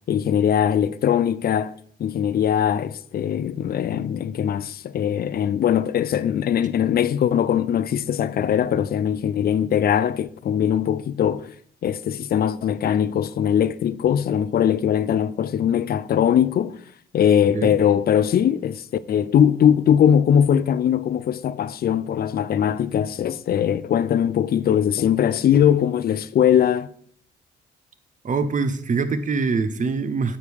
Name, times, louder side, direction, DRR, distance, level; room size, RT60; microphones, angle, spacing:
voice 1, 0.1-1.7 2.0-11.5 11.8-16.8 17.1-26.9, left 9 dB, 50° left, 0.5 m, -21 dB
voice 2, 28.2-30.4, right 4 dB, 40° right, 0.9 m, -24 dB
9.0 x 6.5 x 3.5 m
cardioid pair, 90°, 20 cm